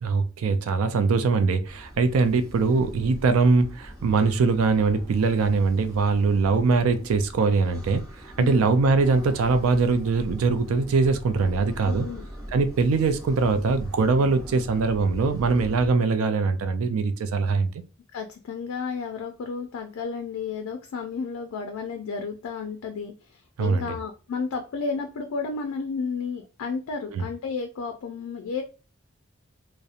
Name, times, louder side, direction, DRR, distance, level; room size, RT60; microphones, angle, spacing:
voice 1, 0.0-12.1 12.5-17.7 23.6-24.0 27.1-27.3, right 4 dB, 85° right, 0.4 m, -22 dB
sound 1, 1.7-15.9, equal, 15° right, 0.9 m, -41 dB
voice 2, 11.9-12.3 18.1-28.6, left 5 dB, 90° left, 0.4 m, -32 dB
2.7 x 2.0 x 2.4 m
head